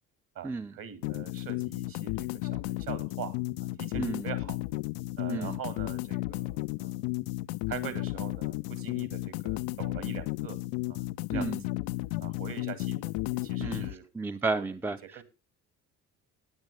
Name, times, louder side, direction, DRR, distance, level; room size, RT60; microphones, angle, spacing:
voice 1, 0.4-3.4 3.8-4.6 5.2-7.0 7.7-10.6 10.9-11.0 11.3-11.7 12.2-14.0 14.5-14.7 15.1-15.2, right 9 dB, 50° right, 2.2 m, -43 dB
sound 1, 1.0-13.9, left 20 dB, 55° left, 0.5 m, -33 dB
voice 2, 3.9-4.3 5.3-5.5 11.3-11.6 13.6-13.9 14.1-15.0, right 3 dB, 5° right, 0.7 m, -32 dB
14.0 x 9.6 x 3.5 m
figure-of-eight pair, 50°, 44 cm